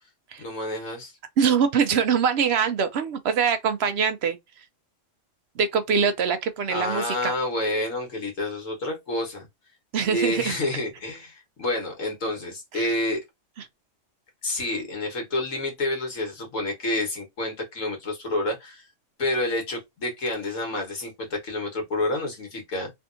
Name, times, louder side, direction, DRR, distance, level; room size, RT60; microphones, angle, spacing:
voice 1, 0.4-1.1 6.7-9.5 10.1-13.2 14.4-18.9 19.2-22.9, left 1 dB, 80° left, 1.7 m, -29 dB
voice 2, 1.4-4.4 5.6-7.3 9.9-10.6 12.7-12.9, right 6 dB, 65° right, 0.7 m, -23 dB
3.5 x 2.6 x 2.5 m
omnidirectional pair, 1.3 m